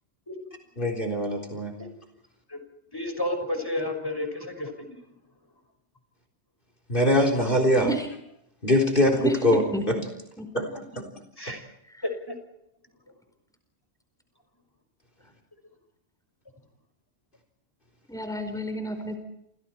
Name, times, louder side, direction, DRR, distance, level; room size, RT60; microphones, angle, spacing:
voice 1, 0.8-1.8 6.9-7.9 8.6-10.0 10.5-10.7 11.0-11.1 11.5-11.6, left 1 dB, 50° left, 5 dB, 4.1 m, -23 dB
voice 2, 2.9-4.7 11.4-11.6 12.3-12.4, left 1 dB, 20° left, 6 dB, 5.8 m, -31 dB
voice 3, 18.1-19.2, right 1 dB, 5° left, 6 dB, 4.5 m, -31 dB
29.5 x 28.0 x 4.6 m, 0.79 s
omnidirectional pair, 1.1 m